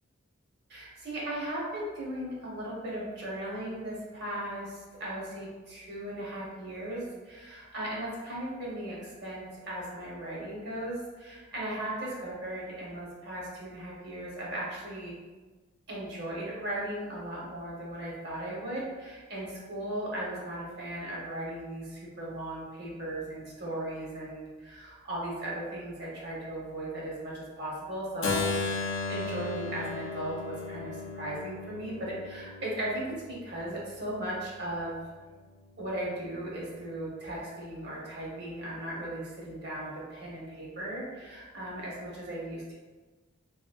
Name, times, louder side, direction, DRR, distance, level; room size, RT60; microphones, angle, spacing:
voice 1, 0.7-15.1 15.9-35.1 35.8-42.7, right 1 dB, 55° right, -5 dB, 0.8 m, -37 dB
Keyboard (musical), 28.2-34.1, left 3 dB, 65° left, 0.4 m, -35 dB
3.0 x 2.6 x 2.3 m, 1.3 s
head